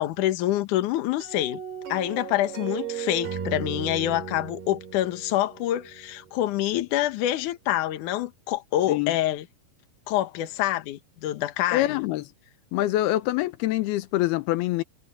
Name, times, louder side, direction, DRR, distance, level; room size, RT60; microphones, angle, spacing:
voice 1, 0.0-1.6 1.9-9.5 10.1-12.0, left 13 dB, 65° left, 2.4 m, -26 dB
sound 1, 1.2-6.4, right 8 dB, 80° right, 5.0 m, -36 dB
voice 2, 11.7-12.3 12.7-14.8, left 16 dB, 90° left, 2.8 m, -25 dB
omnidirectional pair, 4.4 m